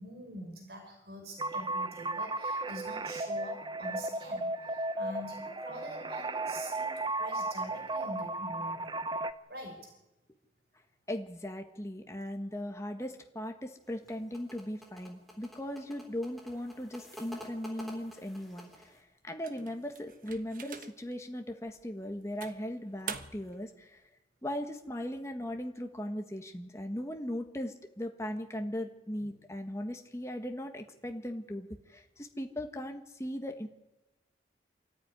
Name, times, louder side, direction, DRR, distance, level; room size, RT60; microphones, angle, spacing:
voice 1, 0.0-8.9 9.5-9.9 29.2-29.3, equal, 65° right, 2 dB, 5.5 m, -45 dB
sound 1, 1.4-9.3, right 2 dB, 25° right, 0.7 m, -35 dB
voice 2, 11.1-24.0 24.4-33.7, left 1 dB, 15° left, 4 dB, 1.4 m, -38 dB
sound 2, 13.8-19.0, equal, ahead, 3.5 m, -50 dB
sound 3, 19.4-21.2 21.7-21.8 22.4-23.6, right 7 dB, 50° right, 1.2 m, -44 dB
25.5 x 14.0 x 9.7 m, 1.0 s
head